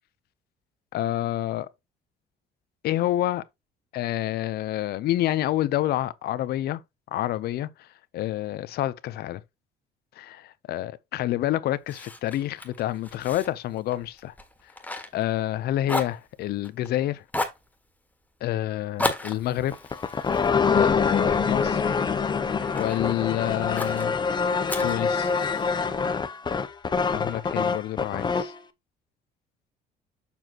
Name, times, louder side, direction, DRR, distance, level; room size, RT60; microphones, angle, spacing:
voice 1, 0.9-1.7 2.8-3.4 3.9-6.8 7.1-7.7 8.1-9.4 10.2-14.3 15.1-17.2 18.4-19.7 20.7-22.0 22.7-24.1 24.8-25.3 27.1-28.5, left 13 dB, 70° left, 0.7 m, -28 dB
Fire, 11.9-15.6 15.8-16.9 17.3-17.7 19.0-21.4 21.9-23.0 23.8-24.1 24.7-25.8, left 2 dB, 10° left, 1.6 m, -34 dB
sound 1, 19.7-28.6, left 5 dB, 25° left, 0.8 m, -25 dB
7.1 x 6.0 x 2.9 m
cardioid pair, 110°, 17 cm